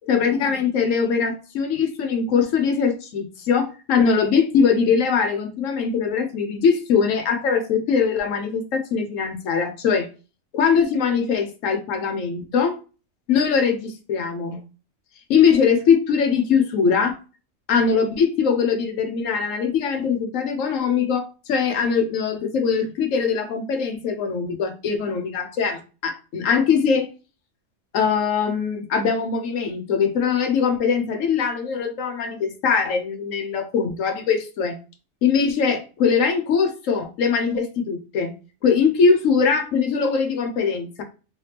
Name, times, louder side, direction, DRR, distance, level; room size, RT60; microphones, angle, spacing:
voice 1, 0.1-10.1 10.5-12.8 13.3-14.6 15.3-17.1 17.7-27.1 27.9-34.8 35.2-38.3 38.6-41.0, left 6 dB, 80° left, 6 dB, 1.1 m, -21 dB
3.3 x 3.2 x 2.8 m, 0.33 s
omnidirectional pair, 1.3 m